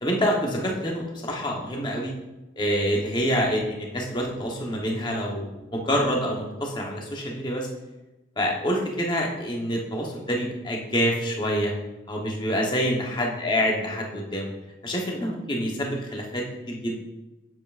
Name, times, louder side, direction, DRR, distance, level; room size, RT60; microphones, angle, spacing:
voice 1, 0.0-2.1 2.6-7.7 8.4-11.7 12.1-14.5 14.8-17.0, equal, 25° left, 0 dB, 1.0 m, -27 dB
7.6 x 7.2 x 2.5 m, 1.1 s
head